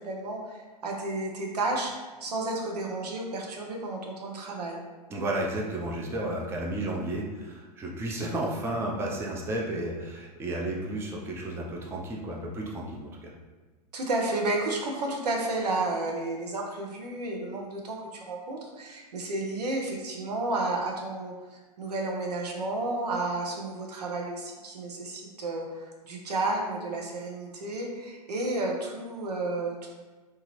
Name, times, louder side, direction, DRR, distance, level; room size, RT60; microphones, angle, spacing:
voice 1, 0.0-1.9 2.2-4.8 13.9-29.9, right 2 dB, 80° right, 0 dB, 0.7 m, -32 dB
voice 2, 5.1-13.3, right 1 dB, 10° right, -1 dB, 0.4 m, -32 dB
2.9 x 2.4 x 2.9 m, 1.3 s
hypercardioid pair, 105°, 20 cm